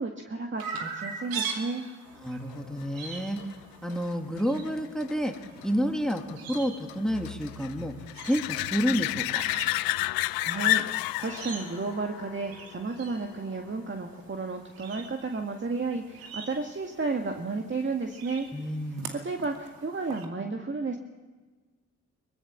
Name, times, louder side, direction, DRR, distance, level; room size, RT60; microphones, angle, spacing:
voice 1, 0.0-1.8 10.4-18.5 18.9-21.0, right 3 dB, 30° right, 3 dB, 2.0 m, -32 dB
Chirp tweet, 0.6-20.2, right 6 dB, 75° right, 2.5 m, -43 dB
voice 2, 2.2-3.4 3.8-5.3 5.6-8.0 8.3-9.4 18.5-19.1, equal, ahead, 5 dB, 2.5 m, -29 dB
sound 1, 2.5-13.8 19.4-19.5, left 18 dB, 75° left, 0.6 m, -33 dB
23.0 x 20.5 x 7.4 m, 1.3 s
hypercardioid pair, 40°, 36 cm